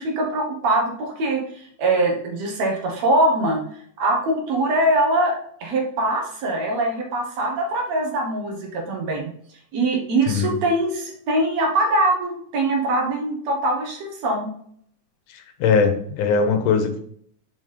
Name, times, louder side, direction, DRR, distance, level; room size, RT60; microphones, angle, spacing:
voice 1, 0.0-3.6 4.0-9.3 9.7-14.5, right 2 dB, 60° right, 0 dB, 2.4 m, -22 dB
voice 2, 15.3-17.0, left 5 dB, 80° left, 7 dB, 2.4 m, -20 dB
6.1 x 5.2 x 3.8 m, 0.64 s
omnidirectional pair, 3.7 m